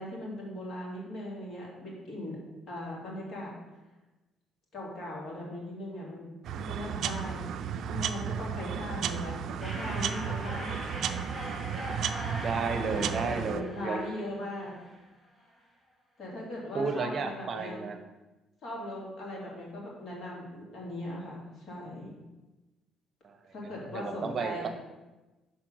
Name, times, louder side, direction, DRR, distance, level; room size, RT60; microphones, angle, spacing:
voice 1, 0.0-2.4 2.7-3.5 4.7-6.3 6.5-10.8 12.9-14.8 16.2-17.9 18.6-22.2 23.5-24.7, left 1 dB, 55° left, -3 dB, 2.5 m, -39 dB
sound 1, 6.4-13.6, right 8 dB, 65° right, 0.4 m, -34 dB
sound 2, 9.6-15.1, equal, 10° right, 2.3 m, -41 dB
voice 2, 12.3-14.0 16.7-18.0 23.2-23.5 23.9-24.8, right 4 dB, 45° right, 6 dB, 0.7 m, -33 dB
5.9 x 4.2 x 6.2 m, 1.1 s
cardioid pair, 105°, 0 cm